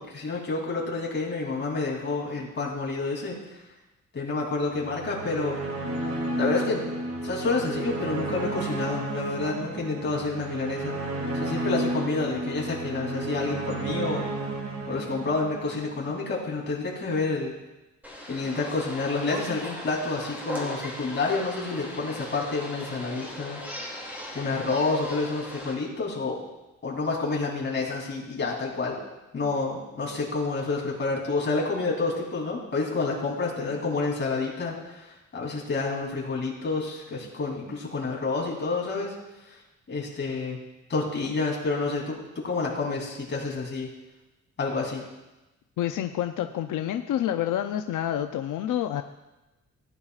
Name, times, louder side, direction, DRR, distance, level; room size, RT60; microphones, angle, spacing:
voice 1, 0.1-3.3 4.1-5.6 6.3-6.8 7.2-11.0 11.3-14.2 14.9-17.5 18.3-23.6 24.3-26.4 26.8-28.9 29.3-35.1 35.3-39.1 39.9-40.6 40.9-42.1 42.4-43.9 44.6-45.0, left 3 dB, 35° left, -3 dB, 3.2 m, -29 dB
sound 1, 4.8-16.1, right 2 dB, 60° right, 2.3 m, -32 dB
sound 2, 18.0-25.7, left 1 dB, 5° right, 2.5 m, -38 dB
voice 2, 45.8-49.0, left 11 dB, 90° left, 6 dB, 0.6 m, -28 dB
18.0 x 10.0 x 2.4 m, 1.0 s
wide cardioid pair, 170°, 30 cm